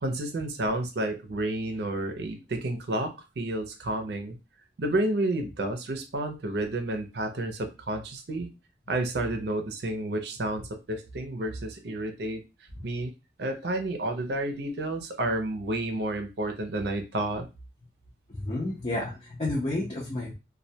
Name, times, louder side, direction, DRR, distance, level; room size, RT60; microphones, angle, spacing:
voice 1, 0.0-4.4 4.8-8.5 8.9-12.4 12.8-13.1 13.4-17.5, right 1 dB, 65° right, 5 dB, 0.5 m, -30 dB
voice 2, 18.3-20.3, left 2 dB, 35° left, -5 dB, 0.6 m, -31 dB
2.2 x 2.1 x 2.7 m, 0.27 s
head